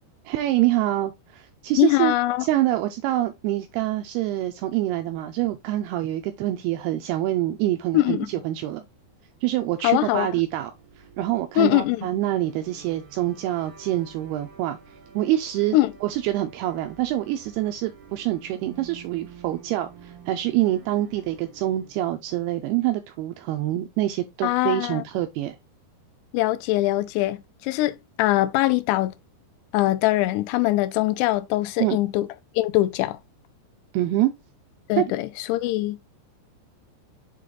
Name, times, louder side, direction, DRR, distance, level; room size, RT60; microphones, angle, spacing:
voice 1, 0.3-2.1 2.4-8.8 9.4-10.7 11.2-14.8 15.1-25.6 31.8-32.0 33.9-34.3 35.0-35.1, right 14 dB, 85° right, 2.2 m, -25 dB
voice 2, 1.8-2.5 7.9-8.3 9.8-10.3 11.6-12.1 15.7-15.9 24.4-25.0 26.3-29.1 29.7-32.3 32.6-33.2 34.9-36.0, left 16 dB, 80° left, 2.6 m, -22 dB
sound 1, 9.3-22.2, right 7 dB, 55° right, 3.2 m, -50 dB
7.5 x 3.4 x 3.8 m
omnidirectional pair, 5.2 m